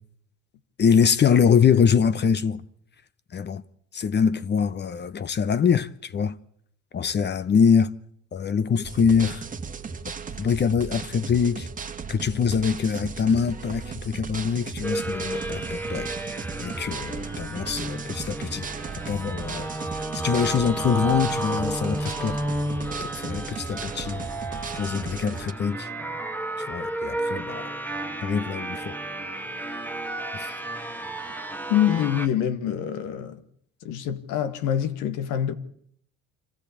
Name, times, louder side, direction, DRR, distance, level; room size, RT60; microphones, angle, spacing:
voice 1, 0.8-2.6 3.3-3.6 3.9-6.3 6.9-7.9 8.3-9.5 10.4-11.7 12.1-18.7 19.1-19.7 19.9-22.4 23.1-24.3 24.8-25.9 26.6-27.7 28.2-28.9 30.3-30.6 31.3-31.4, left 6 dB, 35° left, 0.8 m, -24 dB
sound 1, 8.8-25.5, right 5 dB, 25° right, 1.6 m, -36 dB
sound 2, 14.8-32.3, right 2 dB, 5° left, 2.0 m, -32 dB
voice 2, 31.7-33.4 33.8-35.5, left 10 dB, 85° left, 1.7 m, -25 dB
25.5 x 15.0 x 8.5 m
cardioid pair, 105°, 30 cm